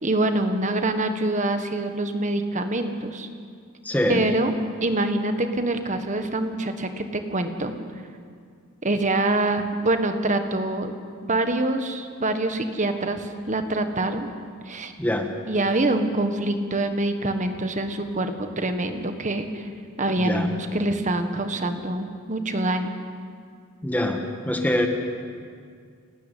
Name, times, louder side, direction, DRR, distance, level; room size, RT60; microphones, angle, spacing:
voice 1, 0.0-3.3 4.1-4.5 4.8-7.7 8.8-10.9 11.2-14.3 14.7-14.9 15.5-19.7 20.0-22.9, right 2 dB, 35° right, 7 dB, 1.5 m, -25 dB
voice 2, 3.8-4.2 15.0-15.3 20.2-20.5 23.8-24.2 24.4-24.9, left 1 dB, 5° left, 4 dB, 1.6 m, -23 dB
29.5 x 12.0 x 9.3 m, 2.2 s
head